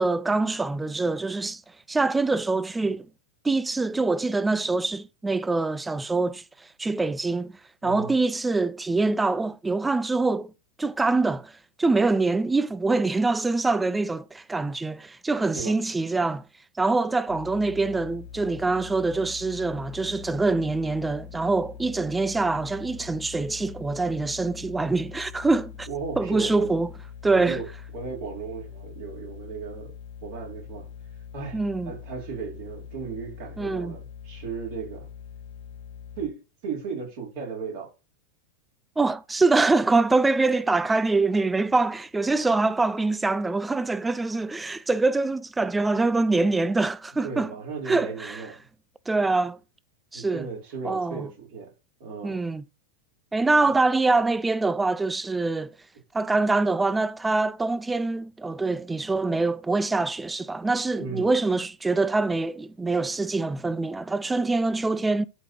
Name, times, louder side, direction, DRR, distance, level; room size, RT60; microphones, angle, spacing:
voice 1, 0.0-1.6 1.9-3.1 3.4-10.5 10.8-11.5 11.8-16.4 16.8-25.9 26.2-26.9 27.2-27.6 31.5-31.9 33.6-34.0 39.0-47.5 47.9-48.4 49.1-49.6 50.1-50.5 50.8-51.3 52.2-52.6 53.3-55.7 56.1-65.3, right 3 dB, 10° right, 0.4 m, -24 dB
voice 2, 7.8-8.1 15.5-15.8 25.9-26.7 27.3-27.7 27.9-29.9 30.2-30.9 31.3-35.1 36.2-37.9 47.2-48.6 50.1-51.7 52.0-52.4 61.0-61.3, right 5 dB, 50° right, 4.0 m, -36 dB
sound 1, 17.3-36.3, left 8 dB, 55° left, 1.1 m, -43 dB
12.0 x 5.0 x 3.1 m
figure-of-eight pair, 90°, 0 cm